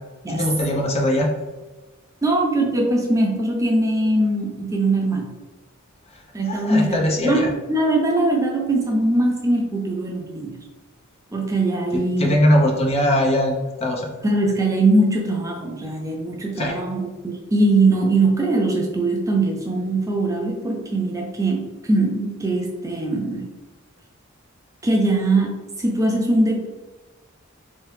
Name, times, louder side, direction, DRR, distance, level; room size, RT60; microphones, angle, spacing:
voice 1, 0.3-1.3 6.5-7.5 11.9-14.1 16.6-16.8, left 1 dB, 30° left, 0 dB, 0.7 m, -20 dB
voice 2, 2.2-5.3 6.3-10.6 11.3-12.3 14.2-23.5 24.8-26.7, right 2 dB, 15° right, 0 dB, 0.4 m, -21 dB
3.6 x 3.2 x 3.2 m, 1.2 s
head